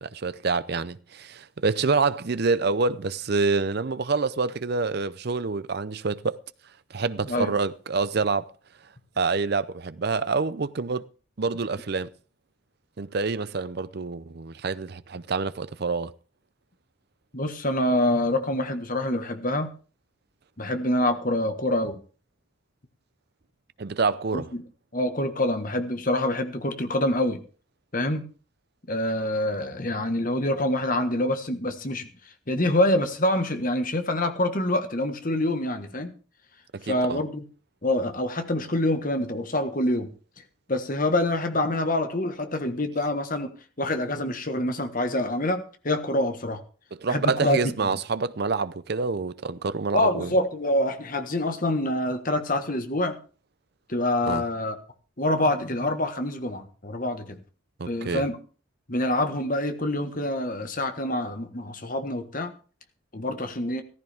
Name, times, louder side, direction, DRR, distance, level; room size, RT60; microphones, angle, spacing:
voice 1, 0.0-6.4 6.9-8.5 9.2-11.1 11.4-12.1 13.0-16.1 23.8-24.5 36.7-37.2 47.0-50.3 54.2-54.4 57.8-58.2, right 4 dB, 50° right, 0.6 m, -27 dB
voice 2, 17.3-19.7 20.6-22.0 24.3-24.4 24.9-27.4 27.9-28.2 28.9-32.1 32.5-36.1 36.8-37.4 37.8-40.1 40.7-43.5 43.8-46.6 47.1-47.6 47.8-47.9 49.9-53.2 53.9-54.7 55.2-57.4 57.9-58.4 58.9-62.5 63.1-63.8, left 1 dB, 40° left, 1.4 m, -26 dB
15.0 x 14.0 x 3.5 m
head